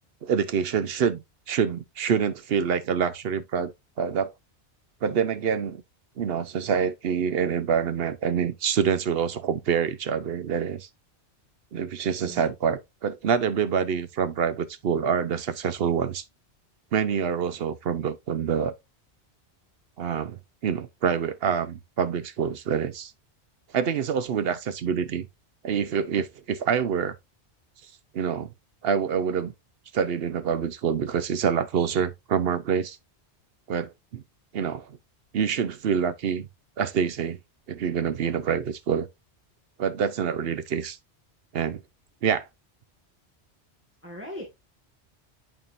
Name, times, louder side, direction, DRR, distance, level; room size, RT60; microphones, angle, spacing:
voice 1, 0.2-4.3 5.0-5.8 6.2-10.9 11.7-16.2 16.9-18.7 20.0-23.1 23.7-25.3 25.6-27.1 28.1-28.5 28.8-29.5 29.9-33.0 33.7-34.2 34.5-34.9 35.3-36.5 36.8-37.4 37.7-39.1 39.8-41.0 41.5-41.8 42.2-42.5, right 7 dB, 65° right, 0.8 m, -26 dB
voice 2, 44.0-44.5, equal, 10° right, 1.7 m, -39 dB
11.0 x 3.7 x 2.5 m
omnidirectional pair, 1.2 m